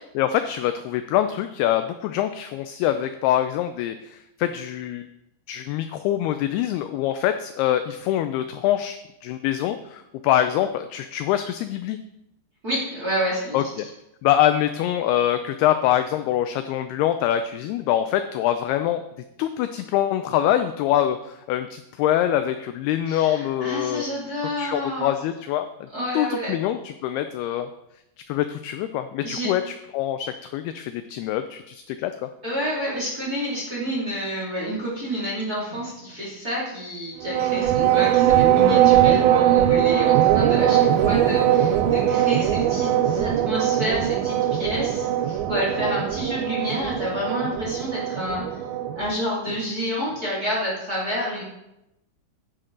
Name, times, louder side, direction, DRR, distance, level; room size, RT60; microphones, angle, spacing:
voice 1, 0.2-5.1 5.5-12.0 13.5-13.9 14.2-19.0 19.4-24.1 24.6-25.9 26.1-27.7 28.3-32.3, left 11 dB, 85° left, 9 dB, 2.3 m, -24 dB
voice 2, 12.6-13.6 23.1-25.1 25.9-26.5 29.2-29.5 32.4-48.6 49.0-51.4, equal, 25° right, -5 dB, 2.3 m, -29 dB
sound 1, 37.2-49.1, right 11 dB, 85° right, 2.1 m, -20 dB
10.5 x 9.3 x 3.8 m, 0.87 s
omnidirectional pair, 5.1 m